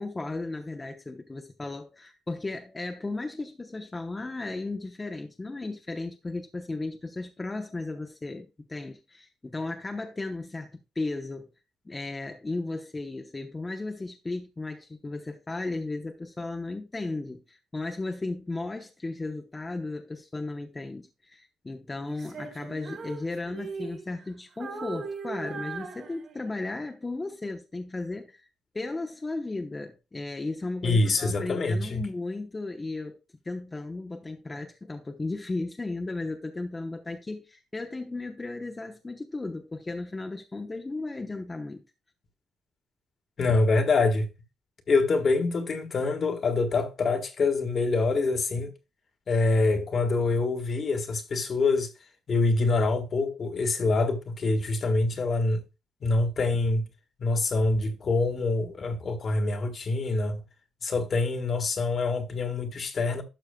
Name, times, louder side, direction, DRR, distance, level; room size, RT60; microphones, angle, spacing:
voice 1, 0.0-11.5 11.8-28.5 28.7-33.2 33.4-41.8, left 2 dB, 20° left, 0.9 m, -35 dB
Female singing, 22.1-24.3 24.6-26.7, right 4 dB, 60° right, 2.6 m, -39 dB
voice 2, 30.8-32.0 43.4-44.3 44.9-48.7 49.3-51.9 52.3-55.6 56.0-56.9 57.2-60.4 60.8-63.2, left 3 dB, 45° left, 1.6 m, -25 dB
12.0 x 6.2 x 2.3 m
cardioid pair, 90°, 0 cm